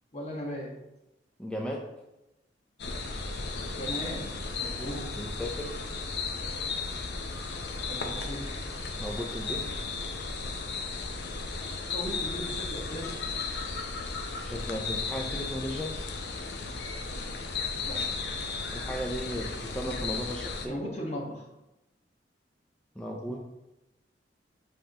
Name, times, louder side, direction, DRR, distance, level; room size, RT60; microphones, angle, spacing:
voice 1, 0.1-0.8 3.7-5.3 7.9-8.8 11.9-13.2 17.9-18.1 20.7-21.5 23.3-23.4, equal, 35° left, -2 dB, 1.4 m, -38 dB
voice 2, 1.4-1.9 5.2-5.8 9.0-9.7 14.4-15.9 18.7-20.8 23.0-23.4, equal, 5° left, -1 dB, 0.5 m, -35 dB
sound 1, 2.8-20.7, left 4 dB, 65° left, 0.7 m, -35 dB
7.6 x 4.9 x 2.9 m, 0.94 s
head